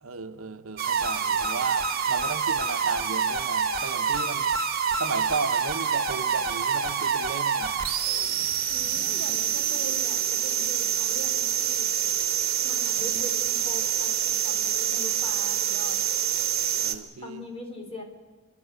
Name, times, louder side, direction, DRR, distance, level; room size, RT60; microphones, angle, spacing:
voice 1, 0.0-4.5 5.0-7.8 16.8-17.4, right 4 dB, 75° right, 9 dB, 1.1 m, -34 dB
sound 1, 0.8-16.9, right 8 dB, 45° right, 1.6 m, -26 dB
voice 2, 8.7-12.0 12.6-16.0 17.2-18.0, left 1 dB, 30° left, 3 dB, 3.7 m, -41 dB
30.0 x 12.0 x 8.2 m, 1.5 s
head